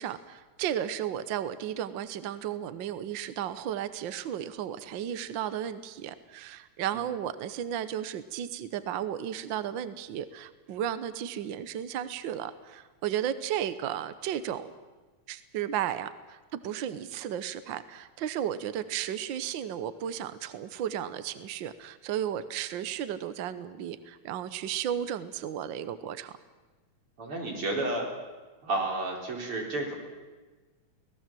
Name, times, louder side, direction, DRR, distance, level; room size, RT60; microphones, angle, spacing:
voice 1, 0.0-14.7 15.3-26.3, right 10 dB, 75° right, 13 dB, 1.1 m, -34 dB
voice 2, 27.2-28.1 28.6-30.0, right 2 dB, 45° right, 0 dB, 5.0 m, -31 dB
25.0 x 18.0 x 7.6 m, 1.3 s
omnidirectional pair, 3.4 m